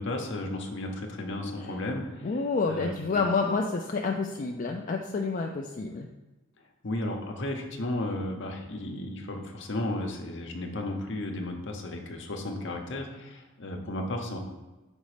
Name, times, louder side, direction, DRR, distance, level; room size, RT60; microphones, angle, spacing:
voice 1, 0.0-3.2 6.8-14.4, left 1 dB, 60° left, 3 dB, 0.9 m, -34 dB
voice 2, 2.2-6.1, left 4 dB, 40° left, 2 dB, 0.4 m, -29 dB
5.3 x 4.1 x 4.9 m, 1.1 s
head